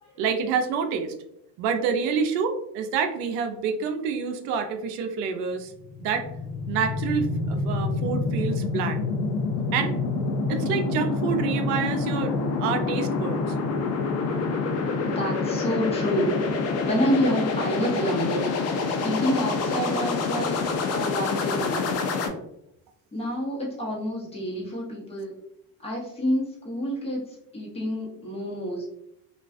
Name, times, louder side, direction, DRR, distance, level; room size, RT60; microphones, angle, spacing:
voice 1, 0.2-1.1 1.6-5.7 6.0-6.3 6.7-9.0 9.7-10.0 10.5-13.4, right 6 dB, 85° right, 7 dB, 0.5 m, -27 dB
sound 1, 5.7-22.3, left 4 dB, 40° left, 0.4 m, -27 dB
voice 2, 15.1-16.4 16.8-18.5 19.0-20.6 20.9-22.0 23.1-25.3 25.8-28.9, equal, 15° left, -4 dB, 0.9 m, -28 dB
2.4 x 2.2 x 2.3 m, 0.78 s
supercardioid pair, 105°, 42 cm